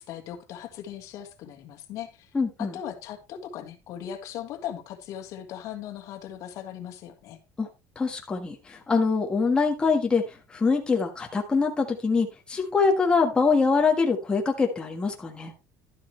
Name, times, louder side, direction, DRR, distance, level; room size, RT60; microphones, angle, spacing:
voice 1, 0.0-2.3 2.6-7.4, left 10 dB, 60° left, 1.8 m, -38 dB
voice 2, 2.3-2.7 7.6-7.7 7.9-15.5, left 4 dB, 15° left, 1.5 m, -24 dB
12.0 x 7.8 x 3.3 m
cardioid pair, 155°, 6 cm